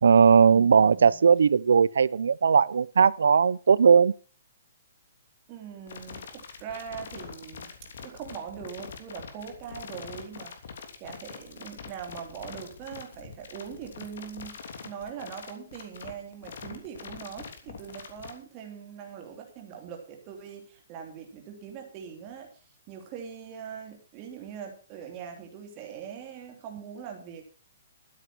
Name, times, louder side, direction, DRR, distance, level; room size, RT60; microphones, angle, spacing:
voice 1, 0.0-4.1, right 6 dB, 90° right, 0.6 m, -19 dB
voice 2, 0.5-1.2 5.5-27.5, right 8 dB, 20° right, 3.1 m, -42 dB
sound 1, 5.9-18.3, left 6 dB, 60° left, 3.1 m, -43 dB
12.5 x 9.4 x 6.1 m
hypercardioid pair, 175°, 0 cm